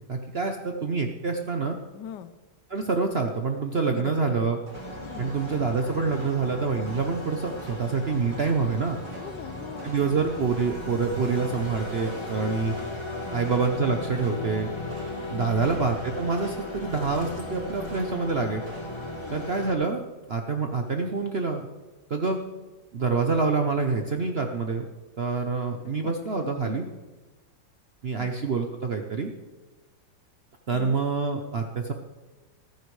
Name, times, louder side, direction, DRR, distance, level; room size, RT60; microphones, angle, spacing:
voice 1, 0.1-1.8 2.7-4.6 5.2-9.0 9.8-12.7 13.3-14.7 15.3-18.6 19.3-20.0 20.3-21.7 22.1-22.4 22.9-24.9 25.2-26.9 28.0-29.3 30.7-31.9, right 4 dB, 50° right, 4 dB, 0.7 m, -26 dB
voice 2, 1.9-2.3 3.9-4.5 5.0-5.4 9.1-9.9 13.2-13.5 15.3-15.8 19.1-19.5 25.8-26.7 28.2-28.3 30.7-31.1, left 9 dB, 75° left, 12 dB, 1.3 m, -42 dB
sound 1, 4.6-19.3, right 2 dB, 75° right, 3.0 m, -49 dB
sound 2, 4.7-19.7, left 1 dB, 15° left, 1.6 m, -37 dB
Sliding door, 16.6-18.9, right 2 dB, 30° right, 1.5 m, -48 dB
14.5 x 13.5 x 3.2 m, 1.2 s
omnidirectional pair, 2.0 m